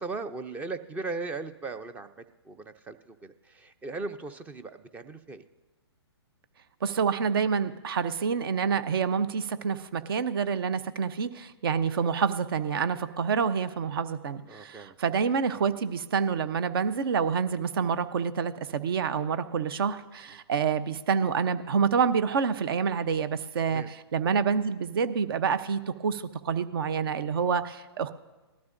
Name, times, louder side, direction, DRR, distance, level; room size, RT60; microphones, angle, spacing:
voice 1, 0.0-2.1 2.4-5.4 14.5-15.0 23.7-23.9, right 3 dB, 10° right, 11 dB, 0.4 m, -38 dB
voice 2, 6.8-28.1, right 6 dB, 55° right, 13 dB, 0.7 m, -27 dB
19.0 x 13.0 x 2.6 m, 1.1 s
hypercardioid pair, 135°, 14 cm